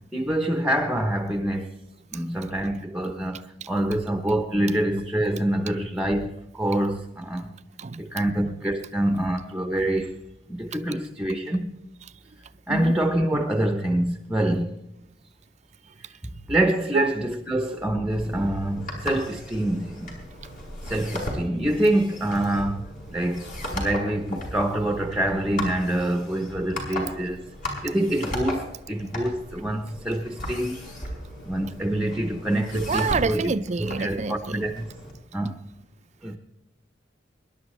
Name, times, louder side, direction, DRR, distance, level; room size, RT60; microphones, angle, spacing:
voice 1, 0.0-1.7 2.1-7.5 8.0-10.2 10.5-11.7 12.7-14.8 16.0-20.2 20.8-27.5 27.8-30.8 31.4-33.5 33.8-34.9 35.3-35.6 36.2-36.4, right 1 dB, 5° right, 0.9 m, -26 dB
sound 1, 18.1-35.1, left 1 dB, 50° left, 5.3 m, -36 dB
voice 2, 32.7-34.7, right 4 dB, 40° right, 0.5 m, -27 dB
24.5 x 11.5 x 3.2 m
head